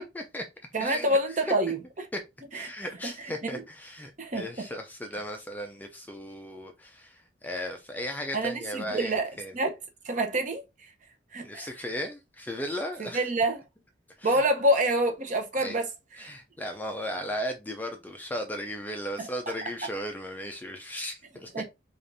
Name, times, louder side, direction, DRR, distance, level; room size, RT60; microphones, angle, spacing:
voice 1, 0.1-0.5 0.8-1.4 2.1-2.2 2.5-9.6 11.4-13.2 14.2-14.4 15.6-15.8 16.2-21.5, equal, 10° left, 0.4 m, -36 dB
voice 2, 0.7-2.1 2.5-2.7 3.4-3.6 4.2-4.7 8.3-9.7 10.0-10.6 11.3-11.7 13.0-13.6 14.2-15.9 16.2-16.3 19.2-19.5 21.5-21.6, right 1 dB, 40° right, 0.8 m, -27 dB
5.0 x 2.4 x 2.6 m
head